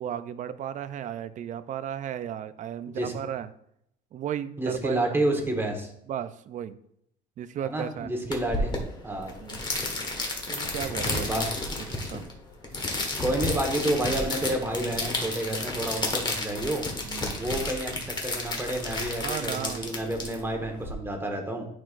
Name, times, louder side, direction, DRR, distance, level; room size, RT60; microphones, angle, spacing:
voice 1, 0.0-3.5 4.1-5.2 6.1-6.8 7.4-8.1 9.4-9.6 10.5-11.3 12.1-12.2 17.0-17.5 19.2-20.0, right 9 dB, 40° right, 13 dB, 0.5 m, -35 dB
voice 2, 4.6-5.9 7.6-8.7 9.0-9.3 11.2-11.5 13.2-16.8 17.4-21.7, right 1 dB, 10° right, 2 dB, 1.4 m, -29 dB
sound 1, 8.3-20.9, left 2 dB, 25° left, 1.4 m, -32 dB
10.5 x 4.6 x 2.5 m, 0.73 s
cardioid pair, 120°, 19 cm